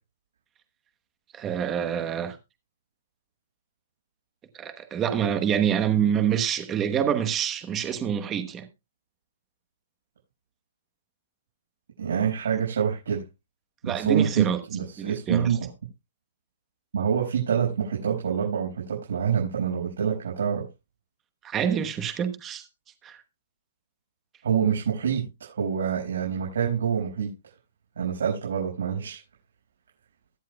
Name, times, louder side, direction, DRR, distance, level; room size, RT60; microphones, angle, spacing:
voice 1, 1.3-2.4 4.5-8.7 13.9-14.6 15.0-15.5 21.4-22.7 23.0-23.2, right 8 dB, 15° right, 1.1 m, -26 dB
voice 2, 12.0-13.3 13.8-15.7 16.9-20.6 24.4-27.3 28.0-29.2, right 7 dB, 80° right, 5.7 m, -26 dB
22.5 x 7.6 x 2.3 m
hypercardioid pair, 170°, 0 cm